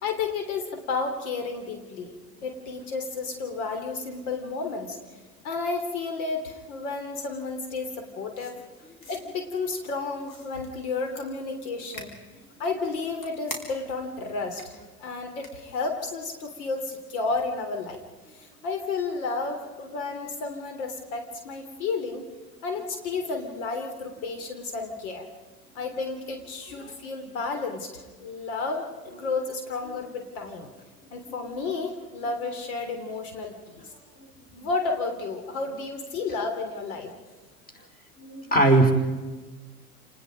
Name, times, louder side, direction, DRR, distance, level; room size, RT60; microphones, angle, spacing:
voice 1, 0.0-5.0 5.4-8.6 9.1-12.1 12.6-18.0 18.3-22.2 22.6-25.3 25.7-30.7 31.1-33.9 34.5-37.1, left 4 dB, 65° left, 5 dB, 3.4 m, -32 dB
sound 1, 8.3-9.2 10.2-10.7 11.2-11.3 11.9-12.1 12.8-13.9 14.6-14.7 15.4-15.5, left 2 dB, 45° left, 5.8 m, -41 dB
voice 2, 38.2-38.9, right 2 dB, 20° left, 5 dB, 5.0 m, -19 dB
29.5 x 20.0 x 5.2 m, 1.3 s
hypercardioid pair, 90°, 46 cm